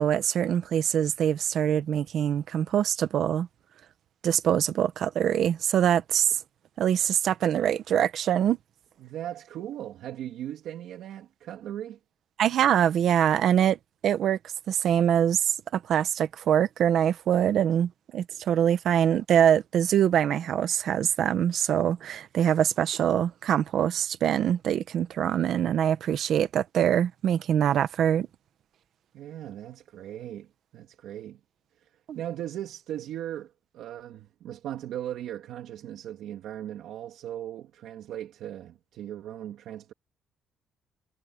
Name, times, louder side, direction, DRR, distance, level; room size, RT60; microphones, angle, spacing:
voice 1, 0.0-3.5 4.2-6.4 6.8-8.6 12.4-13.8 14.0-14.4 14.7-28.3 32.1-32.2, right 9 dB, 55° right, 1.1 m, -24 dB
voice 2, 9.0-12.0 29.1-31.4 31.8-39.9, right 11 dB, 70° right, 2.8 m, -38 dB
cardioid pair, 165°, 0 cm